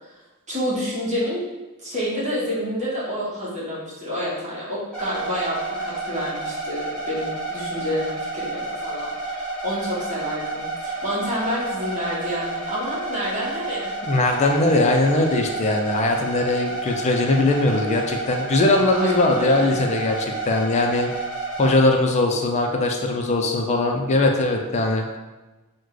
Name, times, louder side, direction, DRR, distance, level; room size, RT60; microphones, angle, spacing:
voice 1, 0.5-1.4 1.8-13.9 18.9-19.7, equal, 35° right, -8 dB, 1.3 m, -29 dB
sound 1, 4.9-21.7, right 2 dB, 5° left, 1.1 m, -30 dB
voice 2, 14.1-21.1 21.6-25.2, left 2 dB, 30° left, 2 dB, 0.4 m, -20 dB
3.1 x 2.1 x 3.7 m, 1.1 s
head